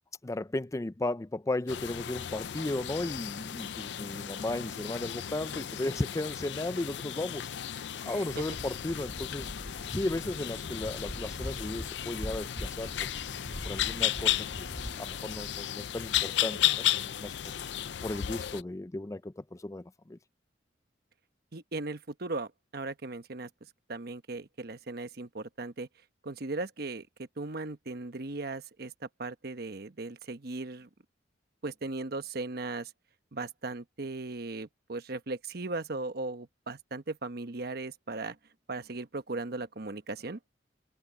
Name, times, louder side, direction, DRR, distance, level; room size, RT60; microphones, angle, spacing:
voice 1, 0.2-7.5 8.0-9.5 9.9-12.9 13.6-14.4 14.8-17.3 18.0-20.2, left 2 dB, 15° left, 0.4 m, -35 dB
sound 1, 1.7-18.6, left 11 dB, 70° left, 0.5 m, -34 dB
voice 2, 8.1-8.5 21.5-25.9 26.2-30.9 31.6-32.9 33.3-38.4 38.7-40.4, right 3 dB, 60° right, 1.1 m, -38 dB
Waves surf, 8.3-15.6, equal, ahead, 7.3 m, -43 dB
head